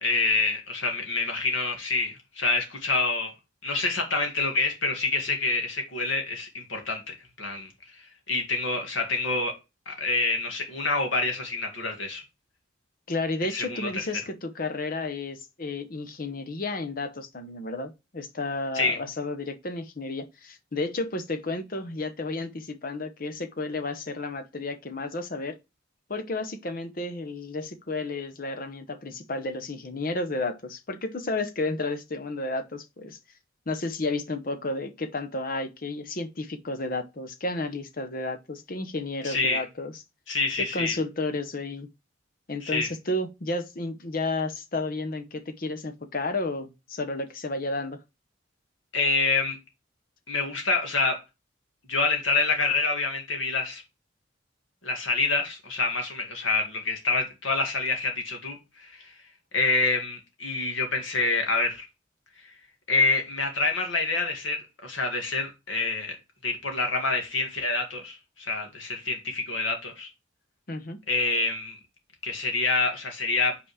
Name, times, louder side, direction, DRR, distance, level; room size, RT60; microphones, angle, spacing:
voice 1, 0.0-3.3 3.6-7.7 8.0-9.6 9.9-12.2 13.5-13.9 18.7-19.0 39.2-39.6 40.3-40.9 42.6-42.9 48.9-49.6 50.3-51.2 51.9-53.8 54.8-59.1 59.5-61.9 62.9-66.2 66.4-70.1 71.1-71.8 72.2-73.6, left 3 dB, 80° left, 2.0 m, -27 dB
voice 2, 13.1-25.6 26.1-33.2 33.7-39.9 40.7-41.9 42.5-48.0 70.7-71.0, left 2 dB, 45° left, 0.9 m, -32 dB
5.6 x 4.2 x 4.8 m
head